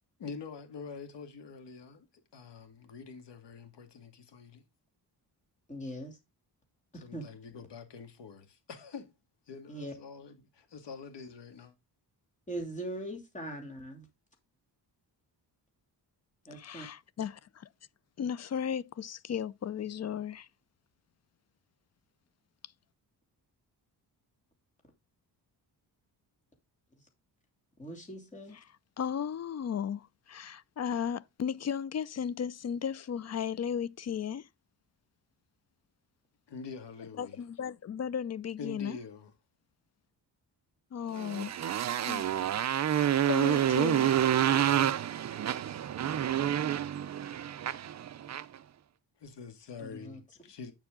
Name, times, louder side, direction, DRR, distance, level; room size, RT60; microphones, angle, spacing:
voice 1, 0.2-2.1 2.3-4.6 6.9-9.1 9.5-11.7 36.5-37.4 38.6-39.3 49.2-50.7, left 5 dB, 80° left, 2.2 m, -45 dB
voice 2, 5.7-6.2 7.1-7.2 9.7-9.9 12.5-14.1 16.5-16.9 27.8-28.6 49.8-50.2, right 1 dB, 15° left, 2.8 m, -40 dB
voice 3, 16.5-17.7 18.2-20.5 29.0-34.5 37.2-39.0 40.9-41.5 41.8-42.3 42.7-44.2, left 8 dB, 40° left, 0.4 m, -35 dB
Motorcycle, 41.2-48.6, right 10 dB, 40° right, 0.5 m, -28 dB
8.7 x 7.2 x 3.7 m
wide cardioid pair, 170°, 42 cm